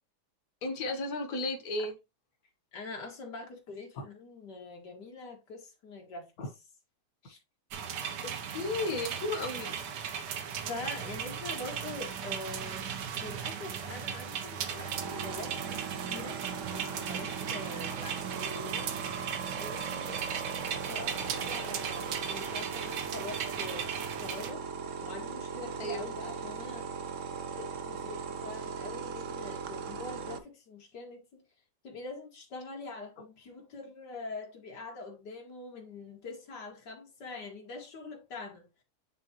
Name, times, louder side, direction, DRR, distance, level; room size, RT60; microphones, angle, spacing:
voice 1, 0.6-1.9 6.4-6.5 8.2-9.8 25.8-26.1, left 2 dB, 60° left, 1.6 m, -34 dB
voice 2, 2.7-6.3 7.2-7.4 10.2-12.8 13.2-16.4 16.7-19.1 19.6-20.2 20.7-24.6 25.0-26.9 27.6-31.4 31.8-38.8, left 3 dB, 80° left, 2.4 m, -44 dB
sound 1, 7.7-24.5, right 7 dB, 80° right, 1.4 m, -37 dB
sound 2, 14.6-30.4, right 6 dB, 55° right, 1.0 m, -39 dB
9.5 x 3.6 x 2.9 m
omnidirectional pair, 1.8 m